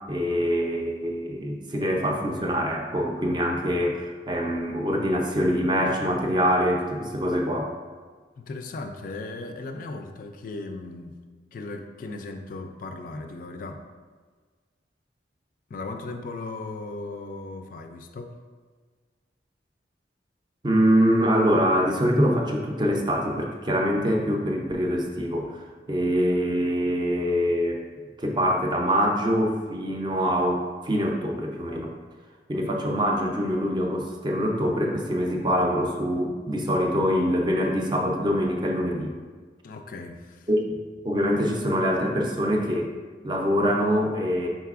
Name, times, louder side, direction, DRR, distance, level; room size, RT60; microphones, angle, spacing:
voice 1, 0.1-7.7 20.6-27.8 28.2-31.9 32.5-39.1 40.5-42.9 43.2-44.5, equal, 25° right, 1 dB, 0.5 m, -24 dB
voice 2, 8.4-11.2 11.5-13.8 15.7-18.4 39.6-40.5, left 3 dB, 50° left, 5 dB, 0.3 m, -37 dB
5.6 x 4.0 x 2.4 m, 1.5 s
head